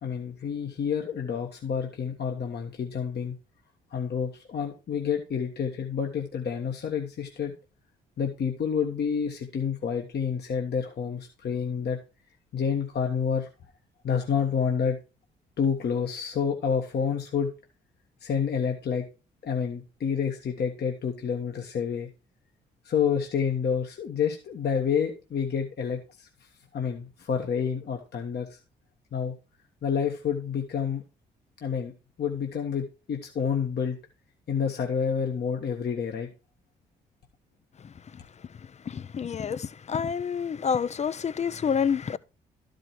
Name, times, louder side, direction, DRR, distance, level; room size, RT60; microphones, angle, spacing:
voice 1, 0.0-3.3 3.9-7.5 8.2-12.0 12.5-13.5 14.0-15.0 15.6-17.5 18.2-19.0 19.4-22.1 22.8-26.3 26.7-28.6 29.1-29.3 29.8-31.0 31.6-31.9 32.2-34.0 34.5-36.3, left 7 dB, 55° left, 1.4 m, -28 dB
voice 2, 38.9-42.2, left 7 dB, 35° left, 0.6 m, -28 dB
12.5 x 5.1 x 4.6 m
hypercardioid pair, 50°, 21 cm